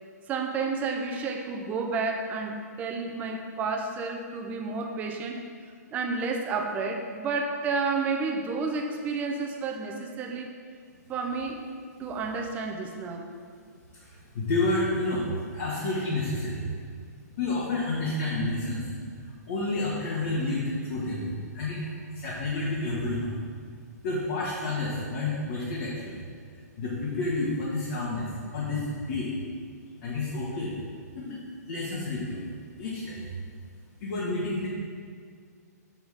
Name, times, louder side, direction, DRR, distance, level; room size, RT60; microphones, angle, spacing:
voice 1, 0.3-5.4 5.9-10.5 11.1-11.6 12.0-13.3, right 4 dB, 15° right, 2 dB, 0.6 m, -31 dB
voice 2, 13.9-15.3 15.5-16.6 17.4-18.9 19.5-21.3 21.5-23.3 24.0-26.2 26.8-29.3 30.0-30.7 31.1-32.4 32.8-33.3 34.0-34.7, left 2 dB, 50° left, -6 dB, 1.6 m, -30 dB
7.2 x 6.0 x 3.6 m, 2.1 s
hypercardioid pair, 145°, 9 cm